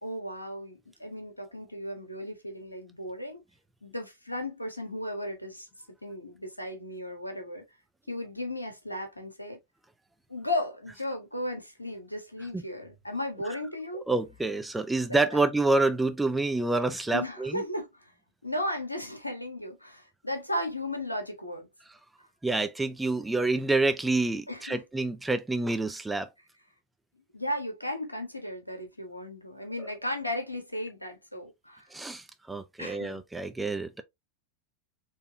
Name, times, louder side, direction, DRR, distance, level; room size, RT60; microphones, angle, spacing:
voice 1, 0.0-3.4 3.8-5.7 6.0-7.6 8.1-9.6 10.3-14.0 15.1-15.4 17.1-18.1 18.4-21.7 24.5-24.8 27.3-31.9 32.8-33.2, left 1 dB, 85° left, 1.4 m, -35 dB
voice 2, 14.1-17.6 22.4-26.3 31.9-34.0, right 2 dB, 5° right, 0.5 m, -27 dB
4.4 x 3.4 x 2.8 m
figure-of-eight pair, 90°, 0 cm